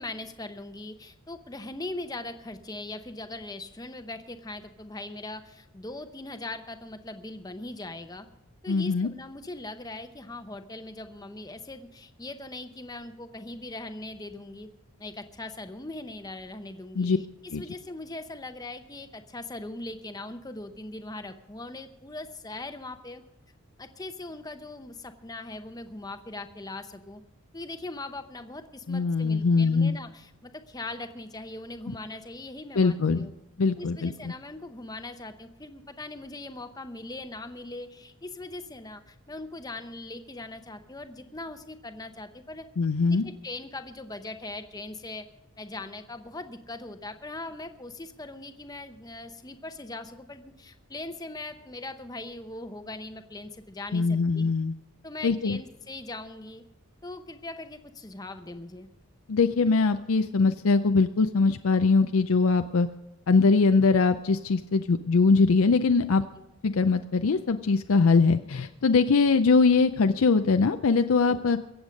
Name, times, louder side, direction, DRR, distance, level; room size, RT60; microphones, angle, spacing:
voice 1, 0.0-8.3 8.6-14.7 15.0-23.2 23.8-27.2 27.5-33.3 33.8-42.7 43.1-45.3 45.6-54.5 55.0-56.6 57.0-58.9 71.2-71.4, left 2 dB, 15° left, 8 dB, 0.8 m, -40 dB
voice 2, 8.7-9.1 17.0-17.2 17.5-17.6 28.9-30.0 31.9-32.0 32.8-33.2 33.6-34.3 42.8-43.3 53.9-54.7 55.2-55.6 59.3-62.9 63.3-66.2 66.6-71.6, left 4 dB, 70° left, 8 dB, 0.5 m, -22 dB
22.5 x 8.1 x 5.2 m, 0.91 s
head